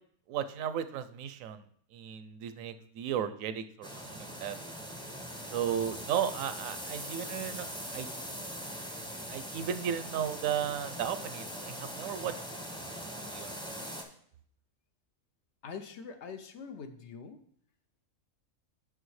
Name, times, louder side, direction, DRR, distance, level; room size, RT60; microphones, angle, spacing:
voice 1, 0.3-1.6 1.9-4.6 5.5-8.1 9.3-12.3 13.0-13.6, right 9 dB, 75° right, 12 dB, 0.9 m, -35 dB
sound 1, 3.8-14.0, equal, 5° left, 0.6 m, -41 dB
voice 2, 15.6-17.4, left 5 dB, 65° left, 7 dB, 0.8 m, -44 dB
9.0 x 6.1 x 3.1 m, 0.64 s
omnidirectional pair, 1.4 m